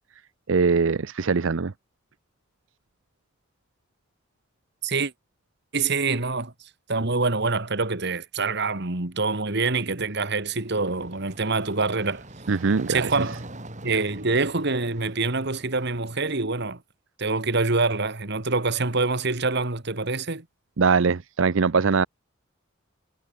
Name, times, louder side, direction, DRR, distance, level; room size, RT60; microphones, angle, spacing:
voice 1, 0.5-1.7 12.5-13.1 20.8-22.1, right 5 dB, 75° right, 0.7 m, -22 dB
voice 2, 5.7-6.5 6.9-12.2 12.9-13.4 13.8-16.8 17.2-20.4, right 3 dB, 60° right, 2.2 m, -25 dB
sound 1, 10.4-16.3, right 1 dB, 40° right, 5.6 m, -43 dB
head